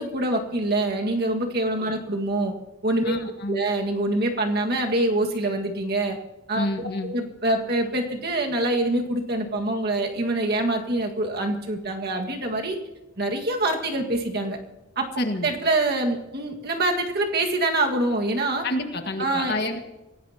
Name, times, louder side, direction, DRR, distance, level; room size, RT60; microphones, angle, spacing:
voice 1, 0.0-2.5 2.8-3.1 3.5-6.2 6.5-12.8 13.2-14.6 15.0-15.1 15.4-18.7 19.2-19.5, right 2 dB, 45° right, 2 dB, 1.8 m, -25 dB
voice 2, 3.0-3.6 6.5-7.1 15.2-15.5 18.6-19.8, left 1 dB, 50° left, 5 dB, 1.7 m, -28 dB
26.5 x 17.0 x 2.9 m, 1.0 s
head